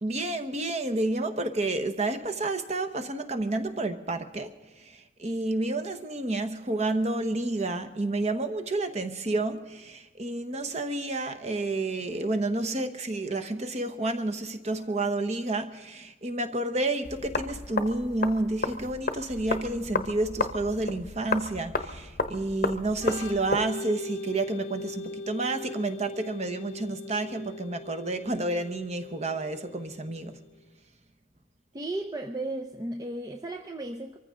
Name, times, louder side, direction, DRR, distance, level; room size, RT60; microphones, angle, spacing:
voice 1, 0.0-4.5 4.8-30.4, right 2 dB, 35° right, 7 dB, 1.1 m, -30 dB
sound 1, 17.0-23.6, left 3 dB, 45° left, 0.9 m, -32 dB
Organ, 22.9-30.5, left 2 dB, 85° left, 1.0 m, -40 dB
voice 2, 31.7-34.2, right 2 dB, 20° right, 3 dB, 0.6 m, -35 dB
24.5 x 14.5 x 3.8 m, 1.1 s
head